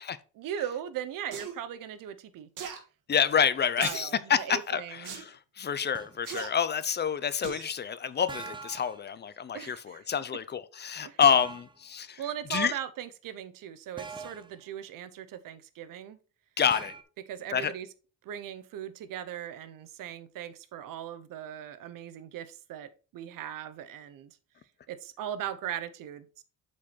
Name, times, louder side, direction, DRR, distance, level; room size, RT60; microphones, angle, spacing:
voice 1, 0.3-2.5 3.8-5.2 9.5-10.1 11.0-11.2 12.2-16.2 17.3-17.9 18.2-24.4 24.9-26.4, right 10 dB, 90° right, 0.8 m, -39 dB
sound 1, 1.3-1.5 2.6-2.8 3.8-4.1 5.0-5.2 6.2-6.5 7.4-7.7 8.2-8.3, right 7 dB, 70° right, 1.6 m, -39 dB
voice 2, 3.1-4.4 4.7-12.2 12.5-12.7 16.6-16.9 17.5-17.7, left 7 dB, 35° left, 0.5 m, -28 dB
sound 2, 5.9-6.2 8.3-9.0 11.2-11.8 14.0-14.6 16.7-17.0, right 4 dB, 15° right, 0.6 m, -42 dB
7.3 x 4.7 x 4.1 m
cardioid pair, 150°, 32 cm